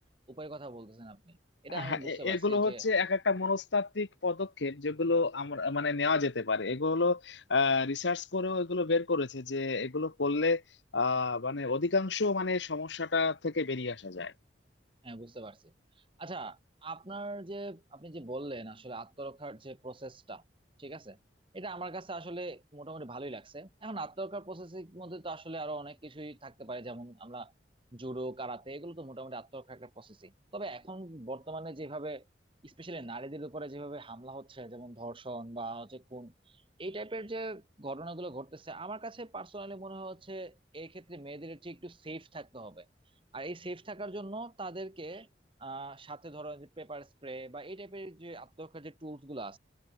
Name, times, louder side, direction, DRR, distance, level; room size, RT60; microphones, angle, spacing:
voice 1, 0.3-1.4 1.6-2.9 15.0-20.4 20.8-21.2 21.5-27.5 27.9-32.2 32.6-45.3 45.6-49.6, right 2 dB, 30° right, 1.7 m, -42 dB
voice 2, 1.7-10.6 10.9-14.3, left 3 dB, 85° left, 1.2 m, -29 dB
head